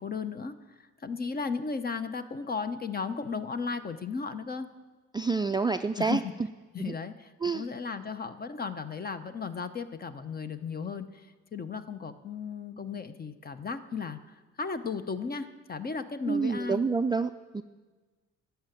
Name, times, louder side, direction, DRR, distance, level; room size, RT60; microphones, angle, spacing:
voice 1, 0.0-4.7 6.0-6.3 6.7-16.8, left 5 dB, 30° left, 11 dB, 0.8 m, -35 dB
voice 2, 5.1-6.2 6.8-6.9 7.4-7.6 16.3-17.6, right 4 dB, 15° right, 8 dB, 0.3 m, -28 dB
12.5 x 5.7 x 9.0 m, 1.3 s
cardioid pair, 90°, 30 cm